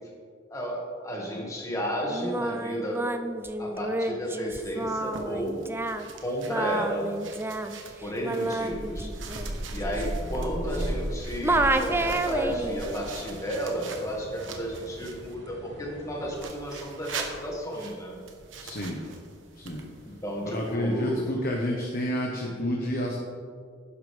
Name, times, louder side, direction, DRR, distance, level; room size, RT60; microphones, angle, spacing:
voice 1, 0.5-3.0 3.6-5.6 6.2-7.1 8.0-9.1 9.7-18.1 20.0-21.3, equal, 15° left, -2 dB, 2.1 m, -32 dB
Singing, 2.1-11.1 11.4-12.8, right 2 dB, 10° right, 0.4 m, -30 dB
sound 1, 4.7-15.4 16.3-20.8, right 4 dB, 90° right, 1.3 m, -44 dB
sound 2, 8.6-16.4, right 1 dB, 65° right, 1.3 m, -37 dB
voice 2, 18.6-19.0 19.5-19.8 20.5-23.2, equal, 50° left, -1 dB, 1.3 m, -29 dB
11.5 x 10.0 x 3.5 m, 2.1 s
head